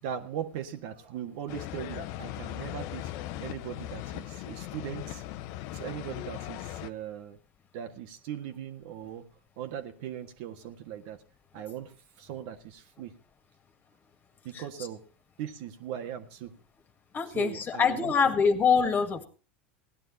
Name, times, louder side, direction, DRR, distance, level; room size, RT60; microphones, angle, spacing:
voice 1, 0.0-3.1 3.4-5.2 5.7-7.4 7.7-9.3 9.6-11.2 11.5-13.2 14.4-15.0 15.4-16.6 17.3-18.3, right 10 dB, 60° right, 7 dB, 1.7 m, -39 dB
sound 1, 1.5-6.9, left 14 dB, 60° left, 0.9 m, -39 dB
voice 2, 17.1-19.2, left 6 dB, 30° left, 8 dB, 1.9 m, -24 dB
17.0 x 11.5 x 4.1 m, 0.37 s
hypercardioid pair, 90°, 6 cm